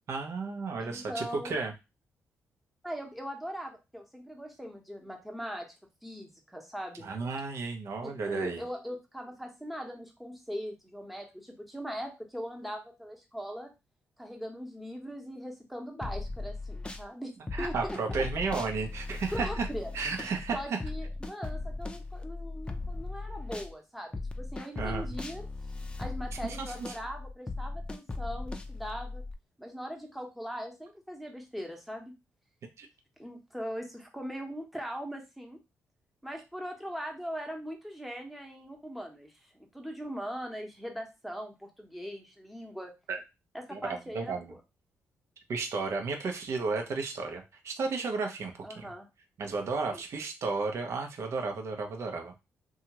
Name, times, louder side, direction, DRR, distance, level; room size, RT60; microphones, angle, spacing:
voice 1, 0.1-1.7 7.0-8.6 17.5-19.7 19.9-20.8 24.8-25.1 26.4-26.9 32.8-32.9 43.1-43.2 43.7-44.5 45.5-48.9 49.4-52.3, right 4 dB, 65° right, 4 dB, 0.7 m, -33 dB
voice 2, 0.8-1.6 2.8-5.7 6.0-7.1 8.0-13.7 14.2-18.4 19.3-19.9 20.5-25.5 26.0-29.2 29.6-32.1 33.2-35.6 36.2-42.9 43.5-44.6 48.6-49.1 49.9-50.0, equal, ahead, 2 dB, 0.9 m, -40 dB
sound 1, 16.0-17.1 17.5-23.7 24.1-29.3, left 3 dB, 20° left, 0.5 m, -38 dB
2.8 x 2.4 x 2.9 m, 0.25 s
supercardioid pair, 65°, 5 cm